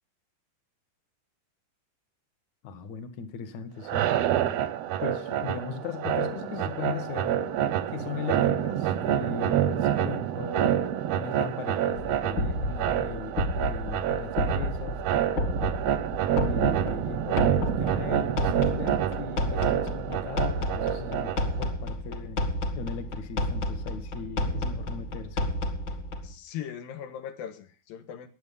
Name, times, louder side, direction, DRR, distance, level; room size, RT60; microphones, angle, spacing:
voice 1, 2.6-4.0 5.0-7.5 7.9-10.8 11.1-15.0 16.4-22.4 22.8-25.4, left 6 dB, 60° left, 8 dB, 2.7 m, -38 dB
sound 1, 3.8-21.7, right 10 dB, 70° right, 1.5 m, -28 dB
sound 2, 12.0-26.3, left 1 dB, 40° left, 2.2 m, -31 dB
voice 2, 26.2-28.3, left 9 dB, 90° left, 8 dB, 3.2 m, -39 dB
21.5 x 8.1 x 5.4 m, 0.35 s
omnidirectional pair, 4.0 m